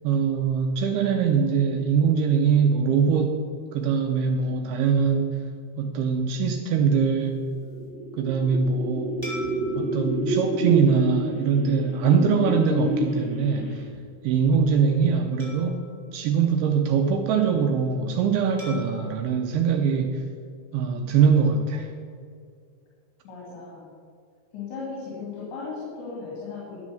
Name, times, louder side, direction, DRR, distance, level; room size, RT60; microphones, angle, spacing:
voice 1, 0.0-3.4 3.7-5.4 5.8-7.4 8.2-9.1 9.8-13.8 14.2-15.8 16.1-20.2 20.7-21.9, right 6 dB, 80° right, 4 dB, 2.3 m, -22 dB
sound 1, 7.5-14.0, right 1 dB, 20° left, 3.5 m, -29 dB
sound 2, 9.2-11.9 12.5-12.7 15.4-17.2 18.6-20.9, left 1 dB, 10° right, 1.8 m, -46 dB
voice 2, 23.2-23.9 24.5-26.8, left 4 dB, 75° left, -6 dB, 4.8 m, -36 dB
12.5 x 7.3 x 6.5 m, 2.2 s
omnidirectional pair, 5.2 m